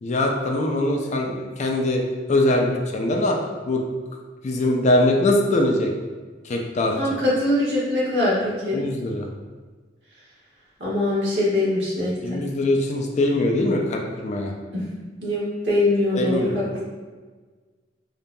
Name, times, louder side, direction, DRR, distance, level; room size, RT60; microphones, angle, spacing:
voice 1, 0.0-2.0 2.3-3.4 3.7-3.8 4.4-5.9 6.4-7.1 8.7-9.3 12.2-14.5 16.1-16.8, left 1 dB, 40° left, 1 dB, 0.4 m, -22 dB
voice 2, 7.0-8.8 10.8-12.4 14.7-14.8 15.2-16.6, left 1 dB, 65° right, -8 dB, 1.4 m, -22 dB
5.1 x 2.7 x 2.2 m, 1.4 s
head